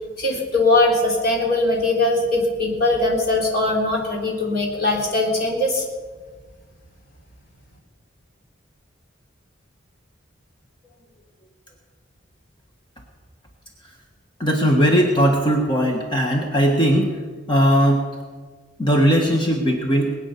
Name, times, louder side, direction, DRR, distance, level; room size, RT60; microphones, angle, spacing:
voice 1, 0.2-5.8, left 2 dB, 55° left, -1 dB, 3.6 m, -20 dB
voice 2, 14.4-17.2 17.5-18.0 18.8-20.1, equal, 25° left, 1 dB, 1.4 m, -18 dB
21.0 x 8.9 x 6.8 m, 1.5 s
head